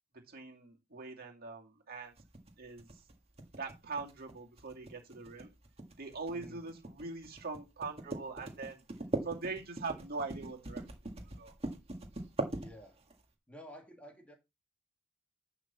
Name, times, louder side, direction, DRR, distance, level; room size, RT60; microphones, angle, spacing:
voice 1, 0.3-2.1 2.6-2.9 3.6-5.5 6.0-8.8 9.2-10.8 11.4-11.5, right 4 dB, 45° right, 2.4 m, -42 dB
sound 1, 2.2-13.2, right 2 dB, 30° right, 1.8 m, -41 dB
voice 2, 6.3-6.7 12.5-13.0 13.5-14.3, equal, 5° left, 1.8 m, -52 dB
11.0 x 3.9 x 6.8 m
head